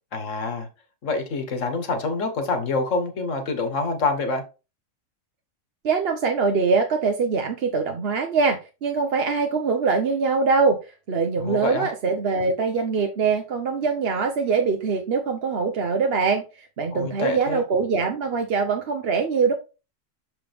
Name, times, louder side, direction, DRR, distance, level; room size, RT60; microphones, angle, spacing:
voice 1, 0.1-0.7 1.0-4.4 11.4-11.9 16.9-17.6, left 3 dB, 70° left, 1.6 m, -26 dB
voice 2, 5.9-10.8 11.1-19.5, right 4 dB, 55° right, 1.0 m, -23 dB
7.0 x 4.7 x 3.5 m
omnidirectional pair, 1.4 m